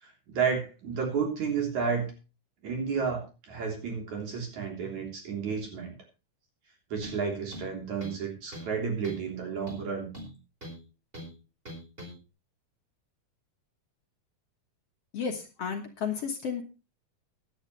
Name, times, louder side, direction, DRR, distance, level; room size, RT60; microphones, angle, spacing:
voice 1, 0.0-2.1 2.6-5.9 6.9-10.1, right 6 dB, 60° right, 1 dB, 4.8 m, -31 dB
sound 1, 7.0-7.2 7.5-8.2 8.5-8.8 9.0-9.3 9.7-10.8 11.1-11.3 11.7-12.1, equal, 15° right, 4.9 m, -42 dB
voice 2, 15.1-16.6, left 6 dB, 55° left, 4 dB, 2.2 m, -33 dB
16.5 x 11.5 x 3.2 m, 0.31 s
omnidirectional pair, 3.7 m